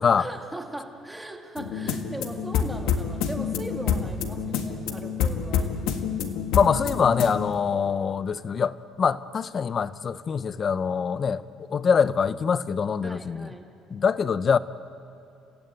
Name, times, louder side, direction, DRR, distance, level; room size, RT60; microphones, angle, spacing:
voice 1, 0.2-6.4 13.0-13.7, right 1 dB, 5° right, 3 dB, 1.7 m, -39 dB
sound 1, 1.6-7.5, left 7 dB, 75° left, 1.7 m, -28 dB
voice 2, 6.5-13.5 13.9-14.6, left 6 dB, 30° left, 15 dB, 0.6 m, -24 dB
29.0 x 16.0 x 9.1 m, 2.5 s
cardioid pair, 165°, 0 cm